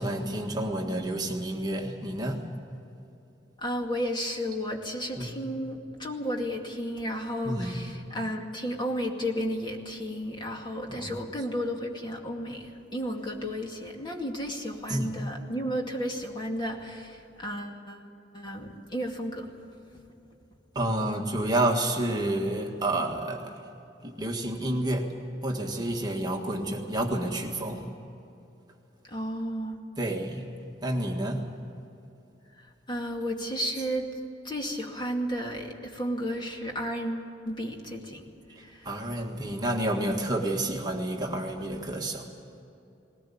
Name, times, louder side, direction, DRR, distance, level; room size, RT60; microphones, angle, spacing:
voice 1, 0.0-2.4 5.2-5.3 7.4-7.9 10.9-11.2 14.9-15.1 20.7-23.6 24.0-25.1 25.4-27.9 30.0-30.4 30.8-31.4 38.8-42.3, right 1 dB, 25° right, 2 dB, 1.7 m, -29 dB
voice 2, 3.6-18.0 18.3-19.5 29.0-29.8 32.6-34.1 34.4-38.3 38.6-38.9, equal, 25° left, 1 dB, 2.3 m, -33 dB
20.0 x 18.5 x 8.6 m, 2.8 s
head